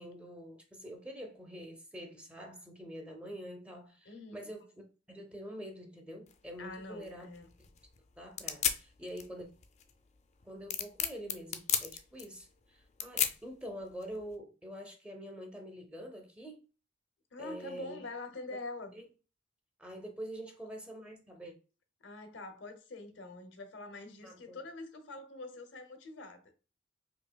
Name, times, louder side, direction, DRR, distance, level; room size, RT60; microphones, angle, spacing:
voice 1, 0.0-4.7 5.1-7.3 7.6-7.7 8.2-9.5 10.4-16.6 17.4-18.0 18.9-19.1 19.8-21.5 24.2-24.6, equal, 5° right, 0.6 m, -46 dB
voice 2, 4.1-4.5 6.6-7.5 17.3-19.0 22.0-26.5, left 2 dB, 70° left, 0.7 m, -45 dB
sound 1, 6.3-14.4, left 9 dB, 35° left, 0.4 m, -37 dB
4.7 x 2.8 x 2.2 m
head